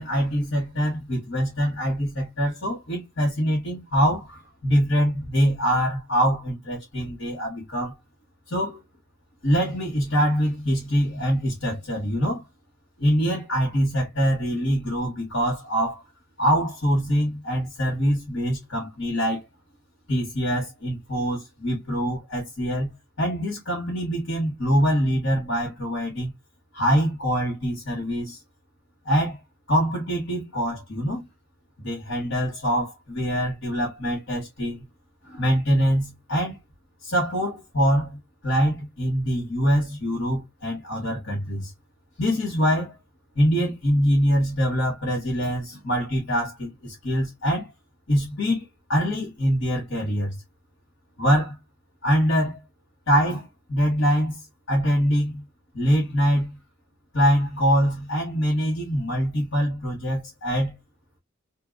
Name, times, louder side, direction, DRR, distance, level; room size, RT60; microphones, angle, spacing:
voice 1, 0.0-7.9 8.5-8.8 9.4-12.4 13.0-16.0 16.4-19.4 20.1-26.3 26.7-28.4 29.0-29.4 29.7-31.3 31.8-34.8 35.2-36.6 37.0-38.2 38.4-41.7 42.2-43.0 43.3-47.7 48.1-50.4 51.2-51.5 52.0-52.6 53.1-54.4 54.7-55.4 55.7-56.6 57.1-60.8, equal, 65° left, 1.4 m, -24 dB
2.8 x 2.7 x 2.5 m
head